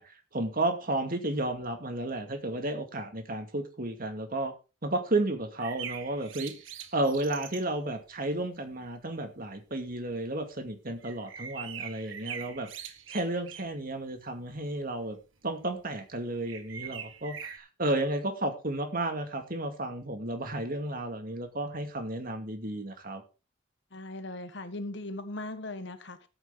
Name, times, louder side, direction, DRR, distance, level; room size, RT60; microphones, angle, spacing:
voice 1, 0.0-4.5 4.8-6.5 6.9-15.2 15.4-23.2, right 2 dB, 45° right, 2.3 m, -32 dB
sound 1, 5.6-7.7 9.2-9.3 9.5-9.6 11.0-13.8 14.1-14.4 15.1-15.2 16.5-17.6, right 8 dB, 80° right, 1.6 m, -42 dB
voice 2, 23.9-26.3, left 2 dB, 60° left, 1.5 m, -39 dB
12.5 x 9.0 x 3.9 m
head